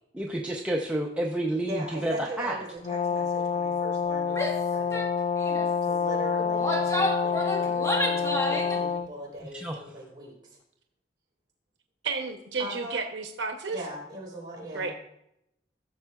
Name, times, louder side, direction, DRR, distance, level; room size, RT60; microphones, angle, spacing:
voice 1, 0.1-2.6 7.4-7.5 9.5-9.8, right 1 dB, 5° right, -1 dB, 0.6 m, -30 dB
voice 2, 1.7-5.1 5.8-10.6 12.6-13.0 13.7-14.9, right 1 dB, 25° right, -4 dB, 3.7 m, -40 dB
Brass instrument, 2.8-9.1, left 6 dB, 35° left, 0.3 m, -27 dB
Female speech woman speaking / Yell, 4.3-4.6 4.9-5.1 5.4-5.7 6.4-8.8, left 1 dB, 15° left, 1.1 m, -30 dB
voice 3, 12.0-13.8 14.7-14.9, right 4 dB, 75° right, 5 dB, 0.8 m, -32 dB
14.5 x 6.7 x 2.3 m, 0.79 s
head